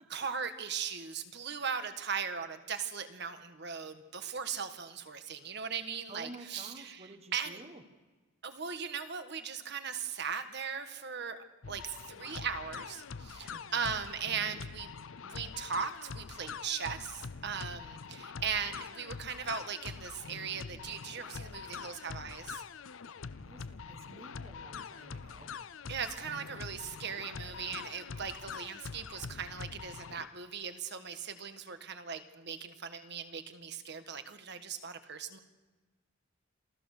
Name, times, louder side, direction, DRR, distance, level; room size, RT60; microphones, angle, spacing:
voice 1, 0.1-7.6 8.4-11.4 11.7-14.9 15.2-22.6 25.9-35.4, right 6 dB, 55° right, 9 dB, 1.6 m, -38 dB
voice 2, 6.1-7.8 13.5-13.8 23.3-25.5, right 2 dB, 30° right, 6 dB, 1.4 m, -51 dB
sound 1, 11.6-30.3, left 5 dB, 75° left, 0.6 m, -44 dB
27.5 x 15.5 x 6.7 m, 1.3 s
head